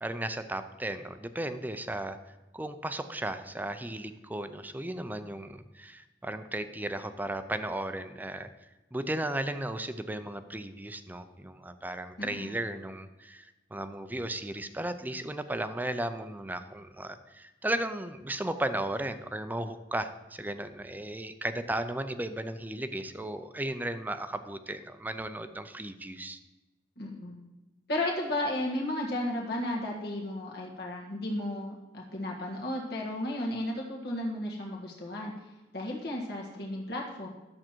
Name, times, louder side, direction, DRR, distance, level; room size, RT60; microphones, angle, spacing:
voice 1, 0.0-2.2 2.5-8.5 8.9-26.4, right 1 dB, 10° right, 10 dB, 0.5 m, -35 dB
voice 2, 12.2-12.6 27.0-27.3 27.9-35.3 35.7-37.3, left 1 dB, 65° left, -2 dB, 1.7 m, -34 dB
11.5 x 7.5 x 4.5 m, 1.1 s
head